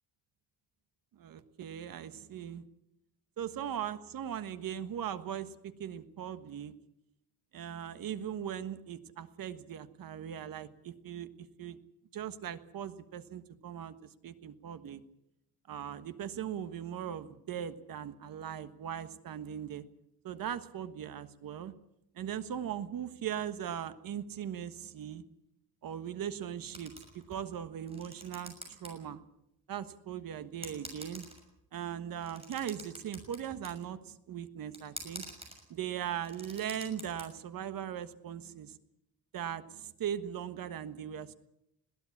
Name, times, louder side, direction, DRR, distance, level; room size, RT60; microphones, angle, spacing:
voice 1, 1.1-2.6 3.4-6.7 7.5-11.8 12.1-15.0 15.7-19.8 20.2-21.7 22.1-25.2 25.8-29.2 29.7-31.2 31.7-35.2 35.7-38.8 39.3-41.3, right 9 dB, 65° right, 11 dB, 1.5 m, -39 dB
sound 1, 26.7-27.5 27.8-28.9 29.2-29.3 30.1-30.2 30.6-31.6 32.2-33.8 34.7-35.6 36.0-37.2, right 2 dB, 15° right, 6.4 m, -46 dB
21.5 x 16.0 x 8.5 m, 0.83 s
cardioid pair, 145°, 37 cm